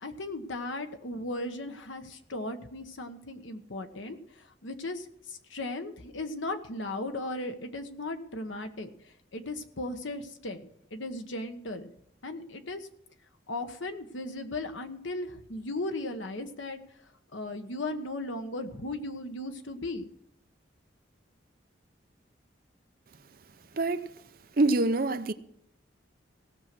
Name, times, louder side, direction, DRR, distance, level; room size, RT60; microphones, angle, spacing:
voice 1, 0.0-8.9 9.3-11.9 12.2-12.9 13.5-16.8 17.3-20.1, left 2 dB, 85° left, 1.2 m, -37 dB
voice 2, 23.7-24.1 24.6-25.3, right 2 dB, 50° right, 0.6 m, -25 dB
17.0 x 6.4 x 6.0 m
head